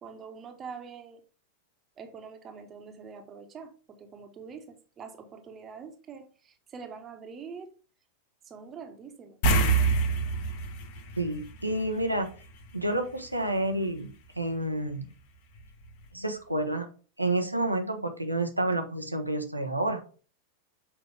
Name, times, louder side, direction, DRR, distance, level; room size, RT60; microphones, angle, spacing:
voice 1, 0.0-1.2 2.0-7.7 8.4-9.4, right 5 dB, 25° right, 1.3 m, -44 dB
sound 1, 9.4-12.2 12.5-12.7 15.6-15.7 16.0-16.1, right 4 dB, 45° left, 1.3 m, -26 dB
voice 2, 11.2-12.3 12.7-15.1 16.1-16.9 17.2-20.0, right 1 dB, 85° right, 1.0 m, -29 dB
7.2 x 5.0 x 3.4 m
figure-of-eight pair, 90°, 0 cm